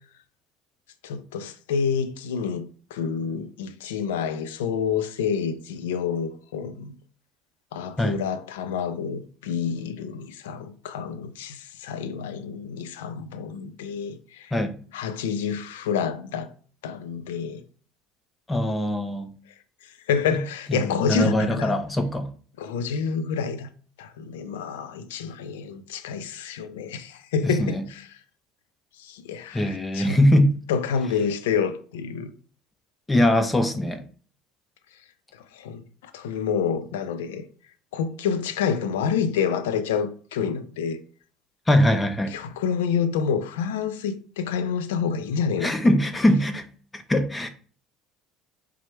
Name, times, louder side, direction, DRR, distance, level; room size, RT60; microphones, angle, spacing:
voice 1, 1.0-2.6 2.9-6.9 7.7-14.5 14.9-16.5 16.8-17.6 20.1-21.7 22.6-23.7 24.0-28.1 29.0-30.2 30.7-32.3 35.5-35.8 36.1-37.4 37.9-41.0 42.3-45.7, left 6 dB, 80° left, 0.4 m, -28 dB
voice 2, 18.5-19.3 20.3-20.4 20.7-22.3 27.4-27.8 29.5-30.5 33.1-34.0 41.7-42.4 45.6-47.5, left 1 dB, 15° left, 0.5 m, -22 dB
4.4 x 2.0 x 4.2 m
hypercardioid pair, 70°, 0 cm